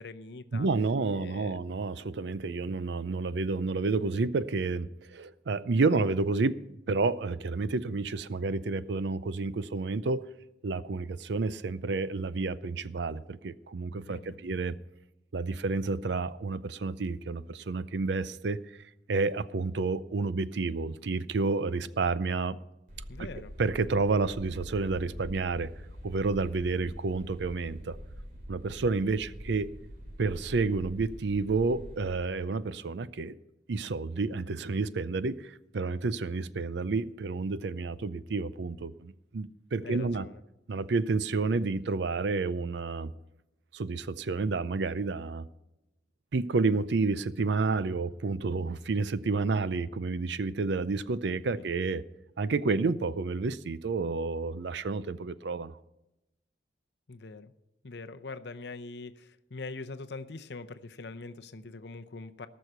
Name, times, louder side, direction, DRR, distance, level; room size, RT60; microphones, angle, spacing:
voice 1, 0.0-0.7 1.1-1.6 14.1-14.4 23.1-23.5 39.8-40.3 57.1-57.5 57.8-62.5, left 3 dB, 65° left, 0.7 m, -43 dB
voice 2, 0.5-6.6 6.9-10.3 10.6-14.8 15.3-18.6 19.1-22.6 23.2-23.3 23.6-25.7 26.0-28.0 28.5-29.7 30.2-33.4 33.7-40.3 40.7-43.1 43.7-45.4 46.3-52.0 52.4-55.8, right 3 dB, 70° right, 0.5 m, -30 dB
sound 1, 22.9-32.1, equal, 45° right, 2.8 m, -45 dB
18.0 x 6.3 x 6.7 m
head